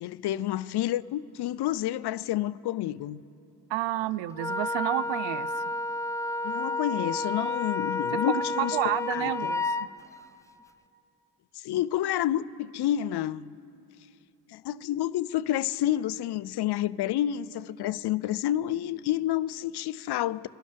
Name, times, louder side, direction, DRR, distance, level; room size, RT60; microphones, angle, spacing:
voice 1, 0.0-3.2 6.4-8.8 9.1-9.5 11.5-13.5 14.5-20.5, left 12 dB, 55° left, 0.5 m, -29 dB
voice 2, 3.7-5.6 8.3-9.8, right 14 dB, 70° right, 0.6 m, -30 dB
Wind instrument woodwind instrument, 4.4-9.9, left 3 dB, 5° left, 0.5 m, -30 dB
27.5 x 11.5 x 3.4 m
supercardioid pair, 50°, 47 cm